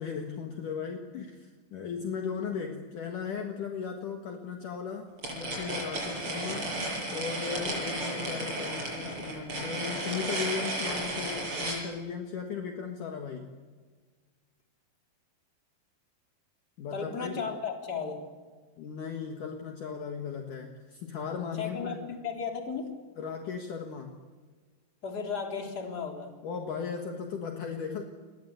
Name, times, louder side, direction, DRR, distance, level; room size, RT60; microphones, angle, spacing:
voice 1, 0.0-6.7 7.1-13.5 16.8-17.5 18.8-22.0 23.2-24.2 26.4-28.1, left 6 dB, 60° left, 3 dB, 3.0 m, -37 dB
sound 1, 5.2-11.8, right 1 dB, 35° right, 7.9 m, -33 dB
voice 2, 16.9-18.2 21.6-22.9 25.0-26.3, left 5 dB, 25° left, 3 dB, 3.8 m, -35 dB
29.0 x 22.0 x 8.0 m, 1.4 s
omnidirectional pair, 4.5 m